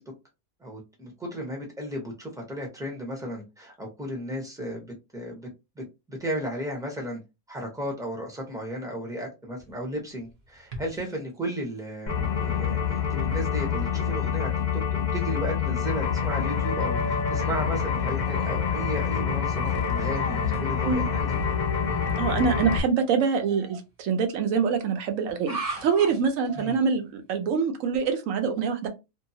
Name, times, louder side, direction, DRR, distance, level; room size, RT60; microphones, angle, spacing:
voice 1, 0.6-5.5 5.8-5.9 6.1-7.2 7.5-14.5 14.9-21.3 26.6-26.8, equal, 5° right, 0.7 m, -34 dB
sound 1, 9.6-11.2 11.9-12.0 12.7-12.8 13.4-13.7 14.1-14.2 14.4-14.6 15.2-15.3 18.2-18.5 19.1-19.8 20.0-20.5 21.9-22.2 23.3-23.8 25.3-26.9, right 3 dB, 35° right, 0.7 m, -39 dB
sound 2, 12.1-22.8, left 7 dB, 75° left, 0.4 m, -26 dB
voice 2, 22.2-28.9, right 6 dB, 70° right, 1.0 m, -25 dB
2.7 x 2.2 x 2.7 m
omnidirectional pair, 1.5 m